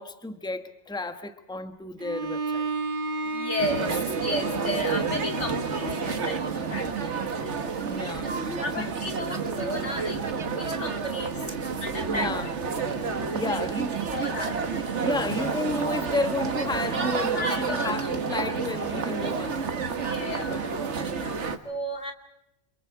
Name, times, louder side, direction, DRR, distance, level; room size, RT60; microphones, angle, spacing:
voice 1, 0.0-2.7 7.8-8.9 12.1-12.5 13.3-13.9 15.0-19.9 21.1-21.5, left 2 dB, 5° left, 1.3 m, -32 dB
Bowed string instrument, 2.0-6.4, right 2 dB, 45° right, 1.5 m, -33 dB
voice 2, 3.2-7.2 8.6-11.4 11.8-12.3 12.7-13.0 13.5-13.6 14.0-14.6 17.4-18.1 19.8-20.9 21.6-22.1, left 1 dB, 75° left, 3.0 m, -34 dB
sound 1, 3.6-21.6, right 5 dB, 75° right, 1.8 m, -30 dB
29.5 x 27.5 x 4.8 m
omnidirectional pair, 1.2 m